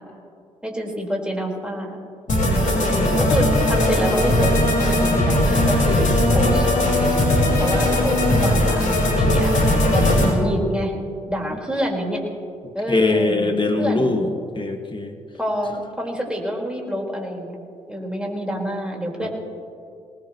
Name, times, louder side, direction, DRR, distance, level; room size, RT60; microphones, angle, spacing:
voice 1, 0.6-2.0 2.8-9.5 9.9-10.9 11.3-12.2 12.7-14.2 15.4-17.6 17.9-19.3, equal, 5° right, -1 dB, 4.6 m, -27 dB
sound 1, 2.3-10.3, left 1 dB, 60° left, 5.2 m, -18 dB
voice 2, 2.3-3.3 12.9-15.1 19.2-19.3, left 2 dB, 30° left, 6 dB, 2.0 m, -23 dB
23.5 x 19.0 x 3.1 m, 2.4 s
supercardioid pair, 50°, 15 cm